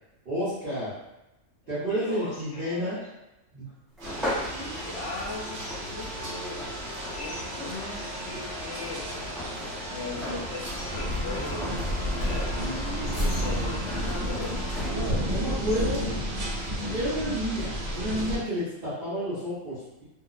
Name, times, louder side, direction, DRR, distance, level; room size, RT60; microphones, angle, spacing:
voice 1, 0.2-0.9 1.7-3.0 3.5-3.7 12.5-13.2 15.3-16.1 16.7-20.0, equal, 50° right, -13 dB, 1.0 m, -31 dB
voice 2, 1.9-3.1 4.5-6.6 7.1-9.1 9.9-12.7 13.0-16.1, left 2 dB, 70° left, -3 dB, 0.9 m, -38 dB
sound 1, 4.0-15.2, left 1 dB, ahead, 0.4 m, -38 dB
sound 2, 4.0-18.4, equal, 90° right, 1.1 m, -32 dB
sound 3, 10.6-14.5, left 1 dB, 40° left, 0.9 m, -45 dB
2.7 x 2.0 x 2.3 m, 0.94 s
omnidirectional pair, 1.3 m